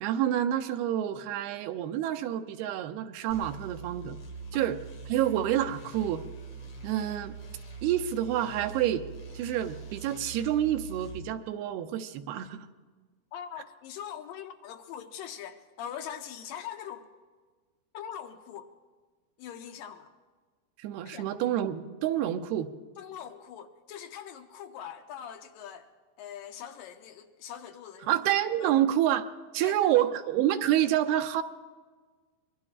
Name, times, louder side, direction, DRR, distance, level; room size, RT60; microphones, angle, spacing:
voice 1, 0.0-4.2 4.5-4.8 5.1-6.2 6.8-7.4 7.8-9.0 9.3-12.7 20.8-22.7 28.1-29.3 29.5-31.4, right 11 dB, 85° right, 8 dB, 2.7 m, -28 dB
sound 1, 3.3-11.2, right 5 dB, 45° left, 2.7 m, -43 dB
voice 2, 13.3-17.1 17.9-18.7 19.4-20.1 21.0-21.3 23.0-25.9 26.2-28.2 28.6-28.7 29.6-30.1, left 9 dB, 75° left, 6 dB, 2.1 m, -42 dB
24.5 x 22.5 x 2.4 m, 1.4 s
omnidirectional pair, 4.4 m